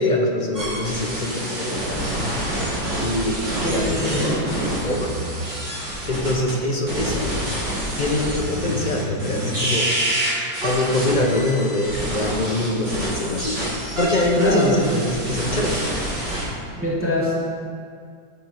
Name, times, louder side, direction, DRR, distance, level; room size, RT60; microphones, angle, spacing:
voice 1, 0.0-2.0 3.0-4.3 4.8-5.1 6.1-7.3 8.0-9.9 10.6-13.6 14.0-15.9, left 1 dB, 35° left, 0 dB, 0.7 m, -24 dB
sound 1, 0.5-6.5 6.9-16.4, right 1 dB, 65° right, 4.2 m, -27 dB
voice 2, 3.6-4.4 14.3-14.7 16.8-17.3, left 1 dB, 5° right, -8 dB, 2.4 m, -23 dB
12.5 x 8.0 x 4.7 m, 2.2 s
omnidirectional pair, 2.2 m